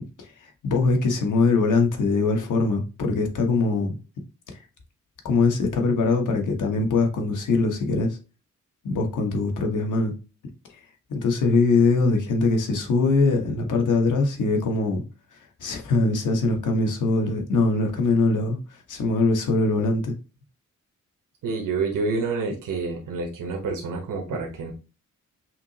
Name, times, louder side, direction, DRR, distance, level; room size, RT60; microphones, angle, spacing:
voice 1, 0.6-4.0 5.2-8.2 8.8-10.1 11.1-15.0 15.6-20.1, left 3 dB, 75° left, 1.2 m, -22 dB
voice 2, 21.4-24.7, right 4 dB, 85° right, 1.0 m, -28 dB
5.7 x 2.9 x 2.7 m
wide cardioid pair, 170°, 31 cm